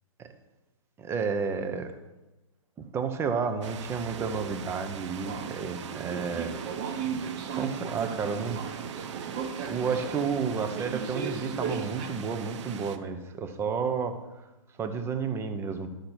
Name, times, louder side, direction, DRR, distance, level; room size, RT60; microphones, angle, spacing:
voice 1, 1.0-1.9 2.8-6.6 6.9-7.1 7.5-8.6 9.6-14.2 14.8-15.9, right 5 dB, 15° right, 8 dB, 0.8 m, -31 dB
sound 1, 3.6-13.0, right 8 dB, 60° right, 0.8 m, -41 dB
Subway metro underground, 5.2-12.1, right 6 dB, 30° right, 1.3 m, -36 dB
12.0 x 6.5 x 4.4 m, 1.1 s
hypercardioid pair, 135°, 17 cm